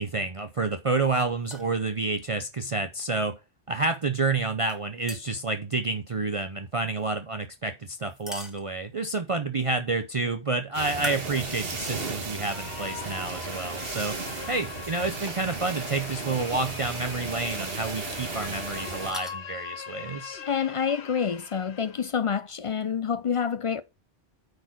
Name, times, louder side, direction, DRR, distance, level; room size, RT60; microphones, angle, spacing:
voice 1, 0.0-3.4 3.7-14.2 14.5-20.4, right 3 dB, 40° right, 0.6 m, -29 dB
sound 1, 1.4-1.8 4.6-5.5 8.0-9.1 10.9-11.9 12.4-12.5 13.9-14.1 15.3-15.5 16.4-16.7 17.0-17.1 18.9-19.4, equal, ahead, 1.6 m, -41 dB
sound 2, 10.7-19.1, right 4 dB, 65° right, 1.6 m, -35 dB
sound 3, 12.3-22.1, left 7 dB, 80° left, 1.2 m, -41 dB
voice 2, 20.4-23.8, left 7 dB, 55° left, 0.3 m, -27 dB
9.4 x 4.3 x 4.5 m
omnidirectional pair, 1.1 m